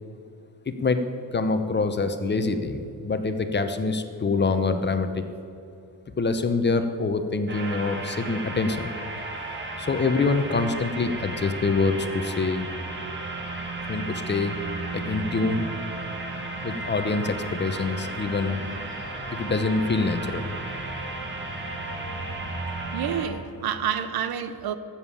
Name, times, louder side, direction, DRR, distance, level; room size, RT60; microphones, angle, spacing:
voice 1, 0.7-5.2 6.2-8.9 9.8-12.7 13.9-14.6 14.9-15.7 16.6-18.8 19.3-20.8, left 3 dB, 30° left, 0.9 m, -25 dB
sound 1, 7.5-23.3, right 2 dB, 30° right, 2.1 m, -34 dB
voice 2, 22.9-24.8, right 8 dB, 70° right, 0.9 m, -28 dB
13.5 x 7.3 x 8.4 m
cardioid pair, 125°, 38 cm